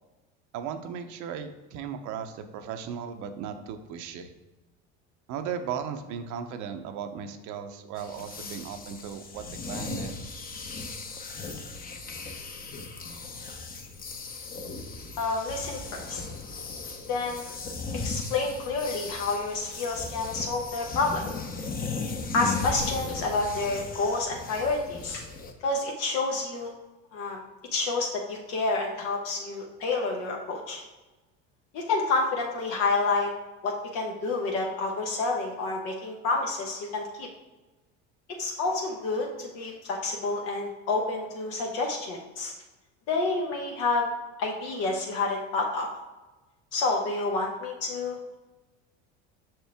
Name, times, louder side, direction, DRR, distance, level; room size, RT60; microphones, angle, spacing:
voice 1, 0.5-4.3 5.3-10.4, right 7 dB, 65° right, 7 dB, 0.7 m, -36 dB
sound 1, 8.0-25.5, left 4 dB, 25° left, 0.7 m, -37 dB
voice 2, 15.2-16.2 17.1-17.5 18.0-21.3 22.3-25.2 25.6-26.7 27.1-27.4 27.7-30.8 31.7-33.3 33.6-37.3 38.4-42.5 43.1-44.1 44.4-45.9 46.7-48.4, left 3 dB, 70° left, 0 dB, 0.9 m, -29 dB
6.1 x 4.4 x 3.5 m, 1.1 s
supercardioid pair, 100°, 33 cm